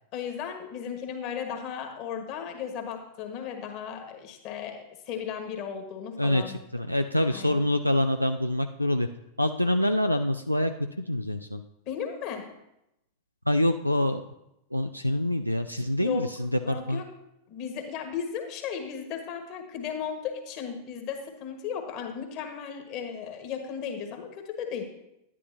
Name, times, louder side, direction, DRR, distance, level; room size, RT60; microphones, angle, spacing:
voice 1, 0.1-6.6 7.3-7.7 11.9-12.5 16.0-16.3 16.6-17.1 17.5-24.8, left 7 dB, 45° left, 5 dB, 1.6 m, -35 dB
voice 2, 6.2-9.1 9.4-10.7 11.0-11.6 13.5-14.2 14.7-17.0, left 1 dB, 90° left, 7 dB, 0.4 m, -26 dB
11.0 x 10.5 x 2.8 m, 0.85 s
figure-of-eight pair, 90°, 0 cm